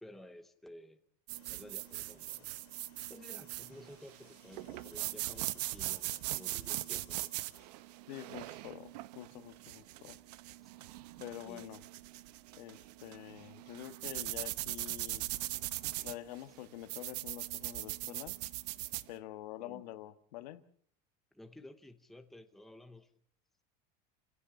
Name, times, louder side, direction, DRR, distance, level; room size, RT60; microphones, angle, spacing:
voice 1, 0.0-1.0 1.5-2.5 3.1-7.3 10.6-10.7 11.4-11.7 15.1-15.2 19.6-19.8 21.3-23.1, left 1 dB, ahead, 7 dB, 0.9 m, -53 dB
sound 1, 1.3-7.7, left 11 dB, 60° left, 3.3 m, -65 dB
sound 2, 1.3-19.1, right 17 dB, 75° right, 0.9 m, -41 dB
voice 2, 8.1-10.2 11.2-11.8 12.6-15.2 16.0-18.4 19.1-20.6, left 14 dB, 80° left, 9 dB, 1.6 m, -47 dB
28.5 x 16.0 x 7.1 m, 0.64 s
cardioid pair, 175°, 21 cm